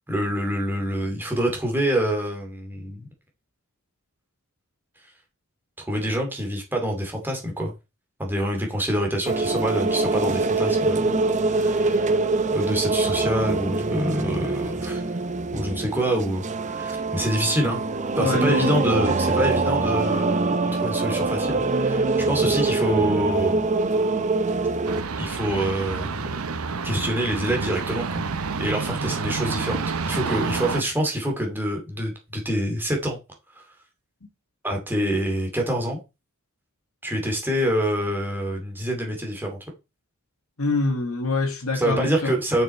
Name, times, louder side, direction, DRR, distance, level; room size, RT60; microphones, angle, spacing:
voice 1, 0.1-3.1 5.9-7.7 8.2-11.1 11.5-12.2 12.5-15.0 15.5-16.4 16.7-17.8 18.2-23.6 25.2-26.3 26.8-28.2 28.6-33.2 33.5-33.6 34.6-36.0 37.0-39.6 41.7-42.6, equal, 10° right, 2.6 m, -26 dB
sound 1, 9.3-25.0, right 3 dB, 35° right, 0.8 m, -24 dB
voice 2, 18.2-18.8 40.6-42.4, left 3 dB, 75° left, 1.8 m, -25 dB
sound 2, 24.8-30.8, right 4 dB, 75° right, 0.8 m, -29 dB
6.8 x 6.4 x 4.4 m
head